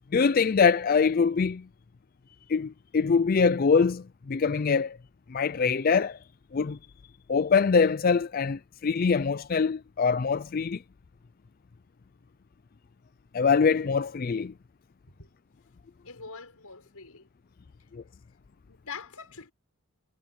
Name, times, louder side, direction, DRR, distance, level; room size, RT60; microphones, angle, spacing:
voice 1, 0.1-1.6 2.5-5.0 5.3-6.2 6.5-6.8 7.3-10.8 13.3-14.5 17.9-18.0, left 5 dB, 40° left, 0.4 m, -24 dB
voice 2, 16.0-17.3 18.7-19.5, left 5 dB, 90° left, 6.6 m, -43 dB
head